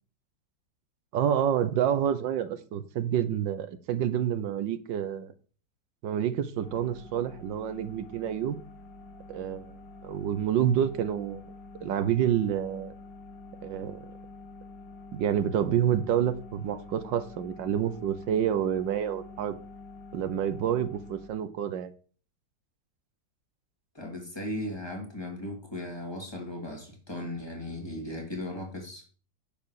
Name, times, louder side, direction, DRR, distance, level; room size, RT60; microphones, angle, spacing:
voice 1, 1.1-5.3 6.0-8.6 9.3-9.8 10.0-11.4 11.8-12.9 13.6-14.0 15.1-19.6 20.1-21.9, right 9 dB, 85° right, 13 dB, 1.6 m, -28 dB
sound 1, 6.6-21.3, left 3 dB, 75° left, 2.3 m, -47 dB
voice 2, 23.9-29.0, left 1 dB, 15° left, 1 dB, 2.8 m, -37 dB
10.5 x 4.9 x 6.5 m, 0.39 s
omnidirectional pair, 1.9 m